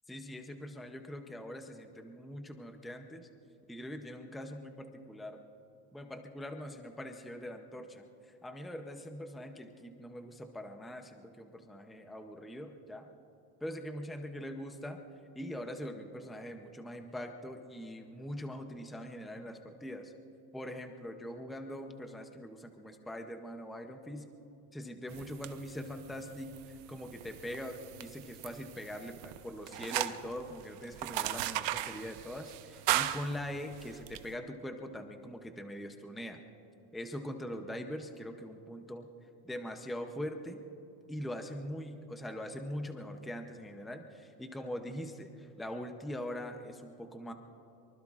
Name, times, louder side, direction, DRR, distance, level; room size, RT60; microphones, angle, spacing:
voice 1, 0.1-3.3 3.7-5.4 5.9-13.1 13.6-15.0 15.4-20.1 20.5-24.3 24.7-36.4 36.9-39.1 39.4-40.6 41.1-47.3, equal, ahead, 5 dB, 0.5 m, -42 dB
sound 1, 25.1-34.2, right 14 dB, 75° right, 0.9 m, -38 dB
24.0 x 24.0 x 2.4 m, 2.9 s
cardioid pair, 170°, 42 cm